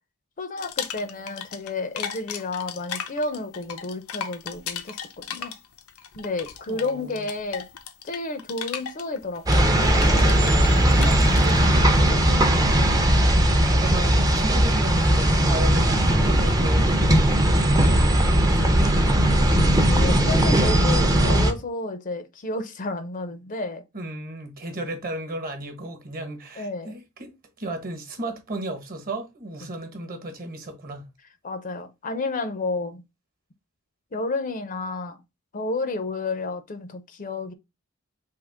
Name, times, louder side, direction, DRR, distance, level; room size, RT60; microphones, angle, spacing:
voice 1, 0.4-5.5 6.1-7.7 8.0-11.2 11.4-13.0 19.8-23.8 26.6-26.9 29.6-29.7 31.4-33.0 34.1-35.2 35.5-37.5, left 3 dB, 40° left, 0.5 m, -32 dB
sound 1, 0.6-1.7 2.0-11.5, left 8 dB, 85° left, 0.6 m, -36 dB
voice 2, 6.7-7.3 11.4-12.2 13.8-17.0 17.5-19.0 23.9-31.1, right 1 dB, 40° right, 1.1 m, -35 dB
sound 2, 9.5-21.5, right 1 dB, 15° right, 0.6 m, -19 dB
3.6 x 2.9 x 4.8 m
head